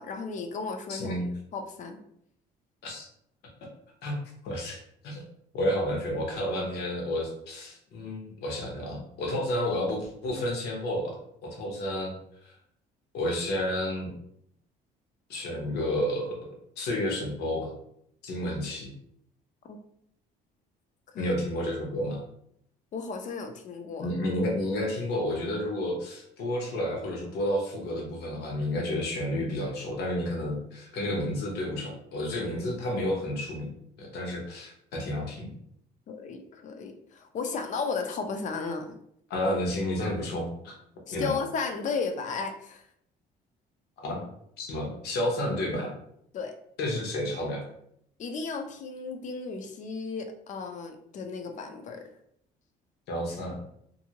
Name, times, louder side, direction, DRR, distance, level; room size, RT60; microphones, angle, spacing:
voice 1, 0.0-2.0 19.7-19.8 21.1-21.4 22.9-24.1 36.1-38.9 41.1-42.8 46.3-46.5 48.2-52.1, left 4 dB, 45° left, 6 dB, 0.5 m, -34 dB
voice 2, 0.9-1.3 2.8-3.0 4.0-4.2 4.4-4.8 5.0-5.2 5.5-11.2 11.4-12.2 12.4-12.6 13.1-14.1 15.3-16.4 16.8-17.7 18.2-18.9 21.2-22.2 24.0-33.7 34.0-35.5 39.3-40.7 41.1-41.3 44.0-44.3 44.6-45.9 46.8-47.6 53.1-53.6, left 1 dB, 75° left, -1 dB, 0.9 m, -31 dB
2.6 x 2.6 x 2.8 m, 0.72 s
cardioid pair, 110°, 17 cm